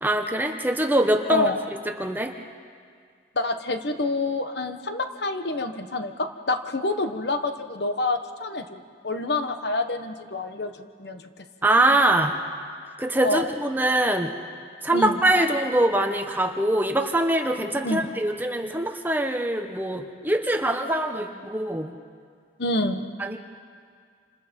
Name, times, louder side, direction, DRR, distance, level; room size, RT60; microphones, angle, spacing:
voice 1, 0.0-1.5 2.0-2.3 11.6-12.3 13.0-14.3 14.8-21.9 23.2-23.4, right 1 dB, 10° right, 4 dB, 1.2 m, -23 dB
voice 2, 3.3-11.4 13.2-13.5 14.9-15.2 17.8-18.1 22.6-23.1, left 2 dB, 60° left, 7 dB, 1.3 m, -27 dB
28.5 x 27.5 x 5.4 m, 2.1 s
head